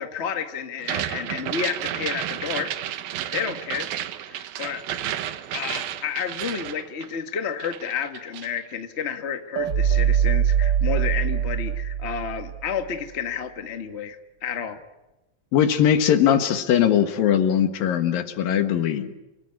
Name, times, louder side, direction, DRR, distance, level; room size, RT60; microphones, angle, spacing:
voice 1, 0.0-2.7 3.3-3.9 4.3-4.8 5.2-14.2 14.4-14.8, left 7 dB, 45° left, 7 dB, 0.8 m, -31 dB
sound 1, 0.8-7.4 7.6-8.6, right 11 dB, 80° right, 2.9 m, -31 dB
sound 2, 9.6-12.7, right 9 dB, 50° right, 1.4 m, -22 dB
voice 2, 15.5-19.1, left 9 dB, 75° left, 9 dB, 3.3 m, -20 dB
29.0 x 19.0 x 9.7 m, 1.0 s
omnidirectional pair, 4.1 m